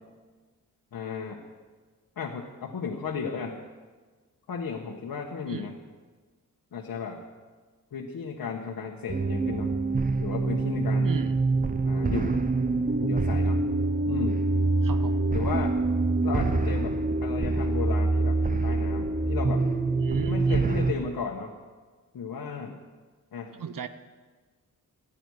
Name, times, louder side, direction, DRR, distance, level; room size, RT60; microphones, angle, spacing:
voice 1, 0.9-1.4 2.2-3.6 4.5-5.8 6.7-7.2 7.9-9.7 10.2-11.1 11.8-12.4 13.0-13.6 14.0-14.4 15.3-15.8 16.2-19.7 20.3-21.6 22.1-22.8 23.3-23.6, left 5 dB, 85° left, 0 dB, 1.4 m, -34 dB
sound 1, 9.1-20.9, right 3 dB, 25° right, 0.8 m, -25 dB
voice 2, 11.0-11.4 14.8-15.2 20.0-20.7 23.6-23.9, right 7 dB, 70° right, 11 dB, 1.0 m, -35 dB
25.0 x 10.0 x 4.9 m, 1.4 s
wide cardioid pair, 110°, 34 cm